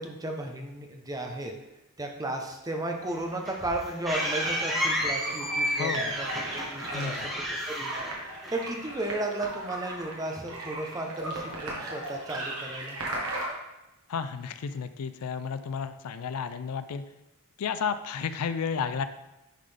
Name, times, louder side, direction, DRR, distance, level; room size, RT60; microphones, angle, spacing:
voice 1, 0.0-1.5 2.0-7.9 8.5-13.0, right 2 dB, 15° right, 3 dB, 0.7 m, -34 dB
sound 1, 3.1-8.9, equal, ahead, 1.1 m, -32 dB
sound 2, 4.1-13.5, right 2 dB, 70° right, 1.5 m, -36 dB
voice 2, 5.8-6.2 6.9-7.3 14.1-17.0 17.6-19.0, left 6 dB, 85° left, 11 dB, 0.4 m, -32 dB
10.0 x 3.8 x 3.4 m, 0.95 s
head